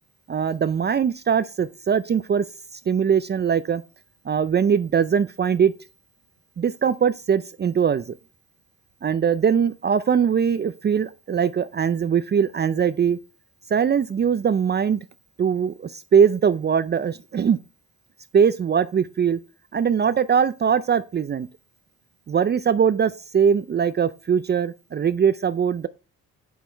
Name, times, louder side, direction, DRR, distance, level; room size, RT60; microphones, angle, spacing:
voice 1, 0.3-2.4 2.7-3.8 4.3-5.7 6.6-8.1 9.0-13.2 13.7-15.0 15.4-17.6 18.3-19.4 19.7-21.5 22.3-25.9, right 7 dB, 35° right, 0.5 m, -21 dB
8.3 x 7.0 x 4.4 m
cardioid pair, 90°, 30 cm